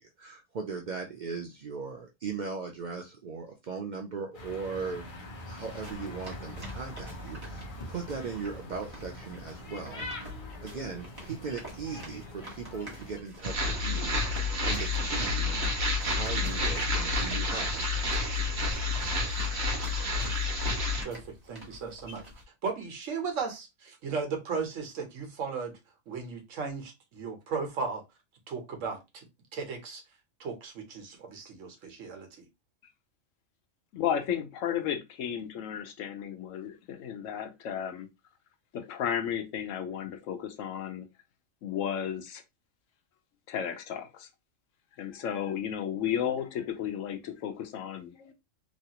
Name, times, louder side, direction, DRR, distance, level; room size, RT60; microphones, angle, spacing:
voice 1, 0.2-5.0 5.5-10.1 10.6-15.6 16.0-17.7, right 5 dB, 90° right, 0.4 m, -38 dB
sound 1, 4.3-13.2, left 1 dB, 45° left, 0.8 m, -44 dB
sound 2, 5.7-22.4, left 1 dB, 20° right, 1.1 m, -46 dB
sound 3, 13.4-21.0, left 2 dB, 55° right, 1.2 m, -29 dB
voice 2, 21.0-22.2 22.6-25.8 26.1-28.0 28.5-29.3 29.5-30.0 30.4-32.4, right 5 dB, 75° right, 1.2 m, -36 dB
voice 3, 33.9-38.1 38.7-41.0 41.6-42.4 43.5-44.3 45.0-48.3, left 9 dB, 75° left, 1.0 m, -33 dB
3.1 x 2.3 x 2.8 m
omnidirectional pair, 1.4 m